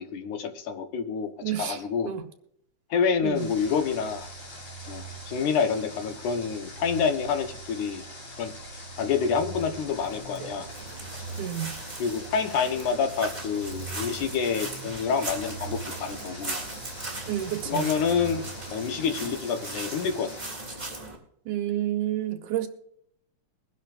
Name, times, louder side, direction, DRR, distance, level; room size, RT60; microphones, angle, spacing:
voice 1, 0.0-1.3 1.6-2.1 2.9-4.3 4.9-8.0 8.4-8.5 9.0-10.7 12.0-16.6 17.7-18.4 18.7-20.3, left 6 dB, 80° left, 2.7 m, -27 dB
voice 2, 1.4-2.2 3.2-3.5 11.4-11.7 17.3-17.9 21.5-22.7, right 12 dB, 80° right, 2.7 m, -30 dB
sound 1, 3.1-20.0, right 4 dB, 35° right, 4.3 m, -44 dB
Water, 3.3-20.4, left 2 dB, 45° left, 3.7 m, -45 dB
sound 2, 9.5-21.2, right 2 dB, 15° right, 3.2 m, -39 dB
22.5 x 10.5 x 2.6 m
omnidirectional pair, 3.5 m